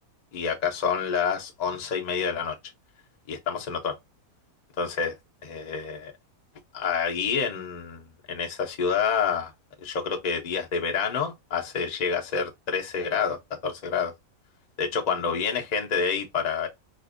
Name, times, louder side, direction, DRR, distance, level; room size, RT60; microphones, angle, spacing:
voice 1, 0.3-2.6 3.3-4.0 4.8-5.1 5.4-6.1 6.7-8.0 8.3-9.5 9.8-13.4 13.6-14.1 14.8-16.7, left 6 dB, 40° left, 0.7 m, -28 dB
4.2 x 2.5 x 2.4 m
omnidirectional pair, 1.6 m